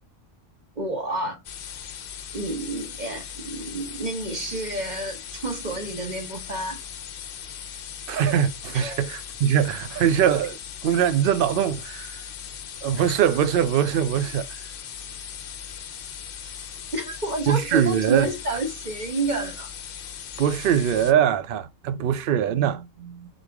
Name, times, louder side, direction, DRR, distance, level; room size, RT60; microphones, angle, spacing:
voice 1, 0.8-1.4 2.3-6.8 8.7-9.0 16.9-19.7, right 2 dB, 40° right, 1.2 m, -30 dB
sound 1, 1.4-21.1, left 8 dB, 55° left, 0.7 m, -39 dB
voice 2, 8.1-12.2 12.8-14.5 17.5-18.3 20.4-23.3, right 9 dB, 60° right, 0.6 m, -22 dB
4.0 x 3.2 x 3.4 m
omnidirectional pair, 1.3 m